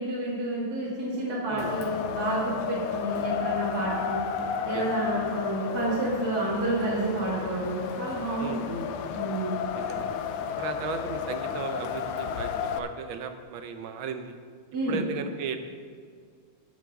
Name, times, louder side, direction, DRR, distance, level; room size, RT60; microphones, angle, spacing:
voice 1, 0.0-4.2 4.7-8.8 9.1-9.6 14.7-15.0, right 1 dB, 45° right, -7 dB, 2.4 m, -30 dB
Wind, 1.6-12.8, left 7 dB, 80° left, 1.5 m, -32 dB
voice 2, 9.7-10.1 10.6-12.5 12.8-14.4 14.9-15.6, right 6 dB, 70° right, 8 dB, 1.5 m, -35 dB
10.5 x 7.3 x 5.9 m, 2.1 s
omnidirectional pair, 2.4 m